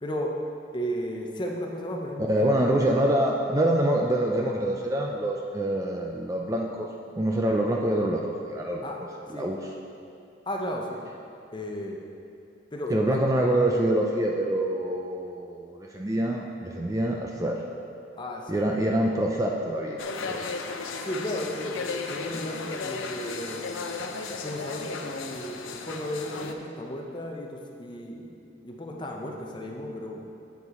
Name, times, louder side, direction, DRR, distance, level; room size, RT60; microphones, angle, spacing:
voice 1, 0.0-0.3 0.7-2.8 8.8-9.0 9.3-9.5 10.5-11.0 11.5-12.0 12.7-13.2 18.2-18.8 21.0-23.6 24.4-28.3 28.6-30.3, equal, 25° left, 1 dB, 0.7 m, -34 dB
voice 2, 2.2-6.9 7.2-9.7 12.9-17.6 18.5-20.0 20.3-20.4, right 1 dB, 15° right, 0 dB, 0.4 m, -26 dB
sound 1, 20.0-26.5, left 4 dB, 80° left, 0.6 m, -35 dB
8.2 x 7.0 x 4.2 m, 2.6 s
head